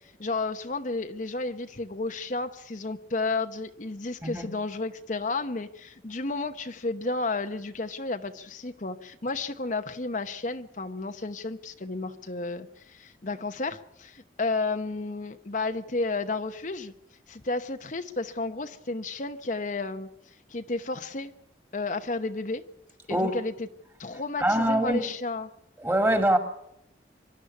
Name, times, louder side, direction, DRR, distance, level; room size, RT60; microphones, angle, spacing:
voice 1, 0.2-16.9 17.3-20.1 20.5-21.3 21.7-22.6 23.1-23.7 24.0-25.5, left 3 dB, 45° left, 1.0 m, -32 dB
voice 2, 24.4-25.0 25.8-26.4, right 1 dB, 15° right, 2.5 m, -23 dB
25.0 x 12.0 x 9.8 m
head